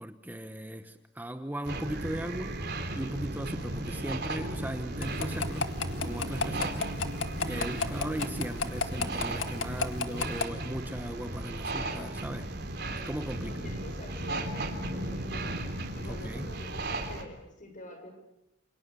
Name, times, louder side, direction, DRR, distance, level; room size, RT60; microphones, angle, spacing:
voice 1, 0.0-2.6 2.9-5.7 6.0-6.9 7.5-12.5 12.9-13.7 16.0-16.5, right 1 dB, 10° right, 1.1 m, -37 dB
sound 1, 1.6-17.2, right 1 dB, 60° right, 3.9 m, -35 dB
sound 2, 5.0-10.4, left 4 dB, 90° left, 1.9 m, -30 dB
voice 2, 13.3-15.7 15.9-18.1, left 1 dB, 45° left, 7.5 m, -47 dB
29.0 x 28.5 x 7.0 m
head